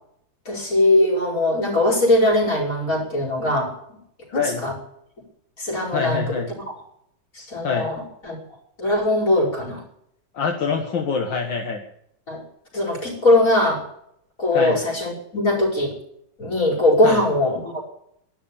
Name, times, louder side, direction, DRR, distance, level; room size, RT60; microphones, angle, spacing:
voice 1, 0.5-3.7 4.3-4.7 5.6-6.2 7.4-8.4 8.8-9.8 12.3-12.4 12.7-13.8 14.4-15.9 16.4-17.9, left 1 dB, 45° left, -1 dB, 5.8 m, -20 dB
voice 2, 4.3-4.6 5.9-6.5 7.6-7.9 10.3-11.8 14.5-14.8 17.0-17.2, left 5 dB, 75° left, 2 dB, 2.2 m, -25 dB
12.5 x 12.0 x 8.6 m, 0.72 s
omnidirectional pair, 2.1 m